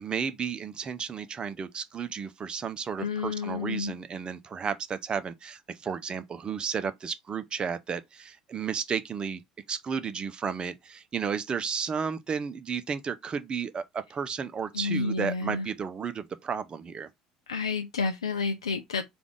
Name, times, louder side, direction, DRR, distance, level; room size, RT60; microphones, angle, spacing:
voice 1, 0.0-9.4 9.7-17.1, right 6 dB, 35° right, 0.6 m, -33 dB
voice 2, 3.0-3.9 14.7-15.7 17.5-19.0, left 4 dB, 90° left, 0.4 m, -30 dB
3.5 x 2.4 x 3.5 m
hypercardioid pair, 65°, 3 cm